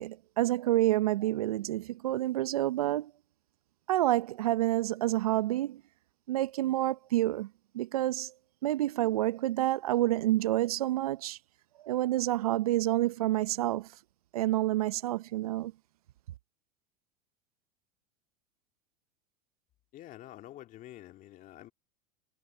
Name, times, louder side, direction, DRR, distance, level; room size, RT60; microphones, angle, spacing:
voice 1, 0.0-3.1 3.9-5.8 6.3-7.5 7.7-8.3 8.6-11.4 11.8-13.9 14.3-15.7, right 15 dB, 80° right, 0.9 m, -28 dB
voice 2, 19.9-21.7, left 14 dB, 45° left, 2.7 m, -48 dB
hypercardioid pair, 90°, 19 cm